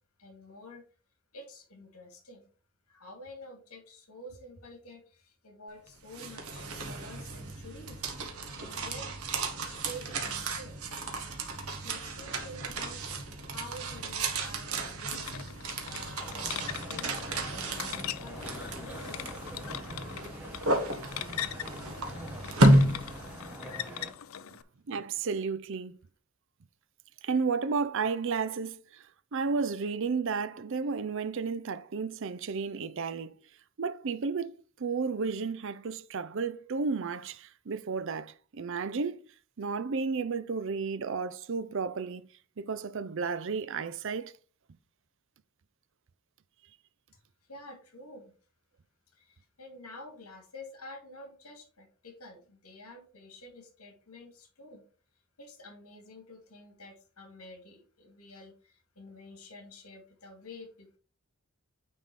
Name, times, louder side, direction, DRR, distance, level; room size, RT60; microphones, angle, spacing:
voice 1, 0.2-0.8 1.3-2.5 2.9-8.0 8.6-9.1 9.6-10.8 11.8-15.3 15.8-19.3 47.5-48.3 49.1-54.8 55.4-61.0, left 1 dB, 80° left, 2.3 m, -49 dB
sound 1, 5.9-23.9, right 1 dB, 80° right, 1.4 m, -32 dB
Foley Mechanism Wheel Small Rusty Loop Mono, 15.1-24.6, left 10 dB, 65° left, 0.5 m, -41 dB
sound 2, 16.2-24.1, equal, 5° right, 1.2 m, -45 dB
voice 2, 24.9-26.0 27.2-33.3 33.8-39.2 39.6-42.3 42.6-44.3, right 5 dB, 55° right, 0.5 m, -32 dB
9.4 x 3.6 x 4.2 m
head